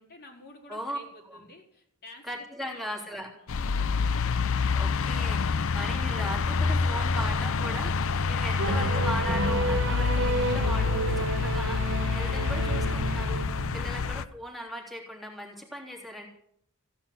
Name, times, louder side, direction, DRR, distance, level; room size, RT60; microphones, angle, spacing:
voice 1, 0.0-2.3 2.6-2.9, left 1 dB, 45° left, 1 dB, 4.6 m, -52 dB
voice 2, 2.2-3.3 4.7-16.3, equal, ahead, -3 dB, 3.4 m, -38 dB
sound 1, 3.5-14.2, left 5 dB, 65° left, 0.6 m, -27 dB
sound 2, 8.6-14.1, right 2 dB, 55° right, 1.1 m, -31 dB
16.0 x 10.0 x 8.5 m, 0.67 s
head